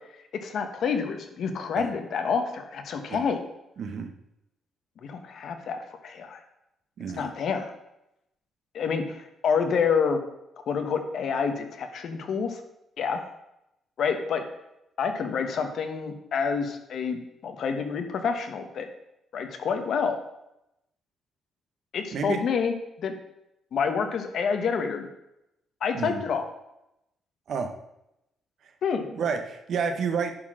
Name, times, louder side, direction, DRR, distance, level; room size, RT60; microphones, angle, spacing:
voice 1, 0.3-3.4 5.0-6.4 7.1-7.7 8.7-10.2 10.7-12.6 13.0-13.2 14.0-14.4 15.0-18.9 19.3-20.2 21.9-23.2 23.7-25.1 25.8-26.5 28.8-29.1, left 6 dB, 50° left, 6 dB, 1.1 m, -28 dB
voice 2, 3.8-4.1 7.0-7.3 22.1-22.4 25.9-26.2 27.5-27.7 29.1-30.3, right 5 dB, 50° right, 5 dB, 1.0 m, -29 dB
10.5 x 4.4 x 6.2 m, 0.86 s
cardioid pair, 170°, 0 cm